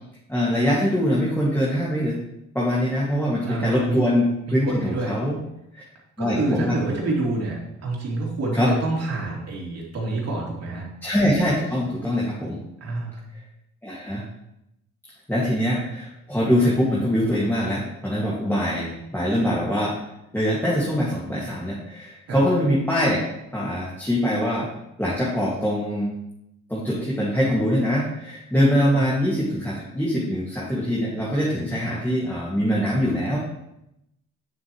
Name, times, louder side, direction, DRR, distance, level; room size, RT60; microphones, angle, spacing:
voice 1, 0.3-2.2 2.5-5.3 5.7-5.8 6.2-6.7 8.5-8.7 11.0-12.6 13.8-14.2 15.3-19.9 20.3-23.2 23.5-24.7 25.0-26.1 26.7-33.4, equal, 5° left, -7 dB, 2.2 m, -23 dB
voice 2, 3.4-4.0 4.5-5.2 6.2-10.9 12.8-13.3 22.3-22.4 28.9-29.1, right 2 dB, 55° right, -3 dB, 3.0 m, -28 dB
9.4 x 7.4 x 3.2 m, 0.84 s
cardioid pair, 90°, 30 cm